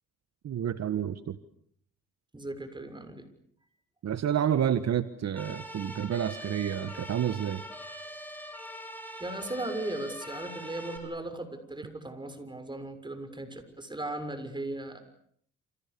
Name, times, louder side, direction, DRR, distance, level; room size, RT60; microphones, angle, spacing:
voice 1, 0.4-1.4 4.0-7.6, right 9 dB, 60° right, 12 dB, 1.5 m, -29 dB
voice 2, 2.3-3.2 9.2-15.0, right 2 dB, 15° right, 9 dB, 6.6 m, -37 dB
sound 1, 5.4-11.0, equal, 5° left, 7.8 m, -43 dB
30.0 x 28.0 x 7.0 m, 0.66 s
cardioid pair, 90°, 30 cm